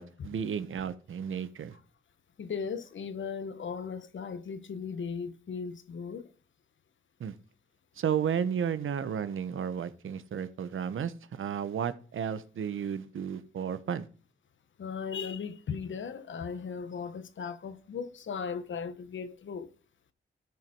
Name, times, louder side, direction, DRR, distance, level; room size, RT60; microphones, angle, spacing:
voice 1, 0.0-1.8 7.2-7.3 8.0-14.1, right 8 dB, 80° right, 0.9 m, -33 dB
voice 2, 2.4-6.3 14.8-19.7, left 6 dB, 70° left, 1.0 m, -37 dB
13.0 x 4.6 x 5.3 m
cardioid pair, 70°, 21 cm